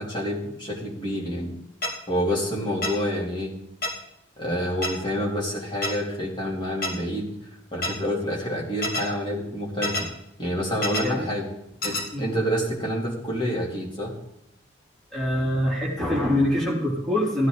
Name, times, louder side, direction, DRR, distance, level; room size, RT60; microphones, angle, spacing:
voice 1, 0.0-1.5 2.1-3.5 4.4-7.3 7.7-10.1 10.4-11.5 11.8-14.2, equal, 25° left, -3 dB, 2.8 m, -28 dB
sound 1, 1.8-1.9 2.8-2.9 3.8-3.9 4.8-4.9 5.8-5.9 6.8-6.9 7.8-7.9 8.8-9.0 9.8-10.0 10.8-11.0 11.8-12.0, left 2 dB, 45° left, 2.2 m, -26 dB
voice 2, 11.9-12.2 15.1-17.5, left 1 dB, 5° left, -5 dB, 3.1 m, -24 dB
16.5 x 10.5 x 3.8 m, 0.80 s
head